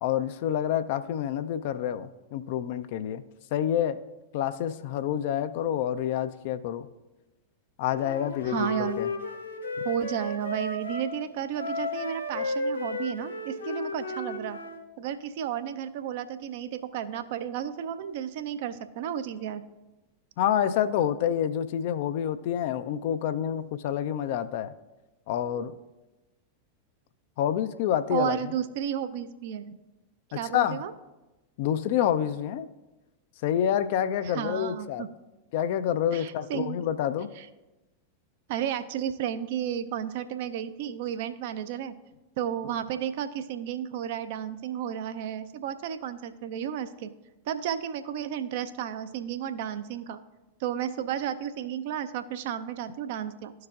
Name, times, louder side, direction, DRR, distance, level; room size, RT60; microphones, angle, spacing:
voice 1, 0.0-3.2 3.5-4.0 4.3-6.9 7.8-9.1 20.4-24.7 25.3-25.7 27.4-28.5 30.3-30.8 31.6-32.7 33.4-35.0 35.5-37.3, left 10 dB, 50° left, 12 dB, 0.4 m, -28 dB
Wind instrument woodwind instrument, 8.0-11.1 11.5-14.8, left 2 dB, 80° left, 1.3 m, -33 dB
voice 2, 8.4-9.0 9.8-14.6 15.0-19.6 28.1-29.8 30.3-30.9 34.3-35.1 36.1-36.8 37.4-37.5 38.5-41.9 42.4-47.1 47.5-50.2 50.6-53.5, right 9 dB, 50° right, 10 dB, 0.4 m, -32 dB
13.0 x 4.7 x 2.4 m, 1.1 s
figure-of-eight pair, 90°, 0 cm